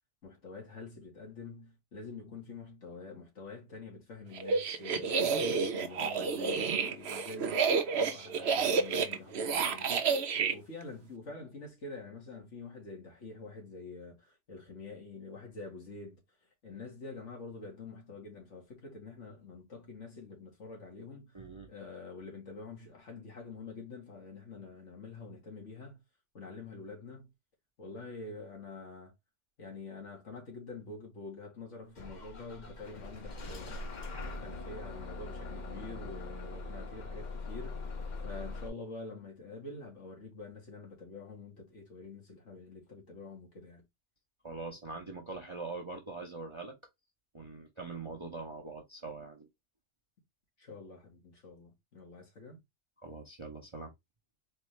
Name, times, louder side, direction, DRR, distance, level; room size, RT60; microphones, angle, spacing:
voice 1, 0.2-5.1 5.5-9.9 10.5-16.2 16.6-21.4 21.7-26.0 26.3-27.3 27.8-29.1 29.6-33.8 34.3-38.0 38.2-43.8 50.6-52.6, left 3 dB, 75° left, 2.0 m, -46 dB
sound 1, 4.4-10.5, right 5 dB, 65° right, 1.0 m, -30 dB
voice 2, 21.3-21.7 44.4-46.7 47.3-49.5 53.0-53.9, right 3 dB, 25° right, 0.9 m, -43 dB
Bus / Engine starting, 31.9-38.7, left 3 dB, 40° left, 0.9 m, -42 dB
4.4 x 2.8 x 3.1 m
omnidirectional pair, 1.2 m